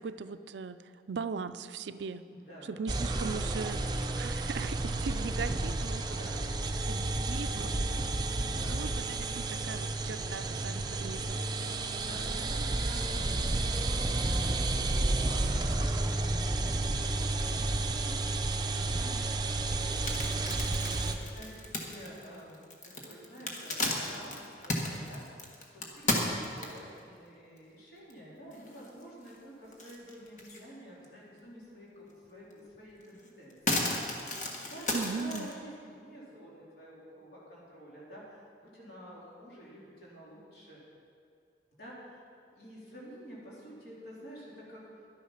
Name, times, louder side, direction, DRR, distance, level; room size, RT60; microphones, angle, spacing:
voice 1, 0.0-2.2 2.6-6.2 6.8-8.0 8.4-11.5 34.9-35.5, right 5 dB, 75° right, 12 dB, 0.4 m, -39 dB
voice 2, 2.3-2.7 6.0-6.4 8.5-9.1 11.7-20.5 21.0-22.6 23.0-25.2 25.7-33.9 34.7-38.2 38.6-40.8 41.8-44.8, equal, 60° left, -7 dB, 3.7 m, -50 dB
sound 1, 2.9-21.1, right 2 dB, 25° right, 0.6 m, -31 dB
sound 2, 19.8-27.0 27.6-27.7 28.1-28.2 28.5-29.4 29.7-30.7 31.0-31.1 32.5-32.6 33.0-35.5, left 2 dB, 45° left, 1.4 m, -34 dB
11.5 x 10.5 x 5.7 m, 2.4 s
head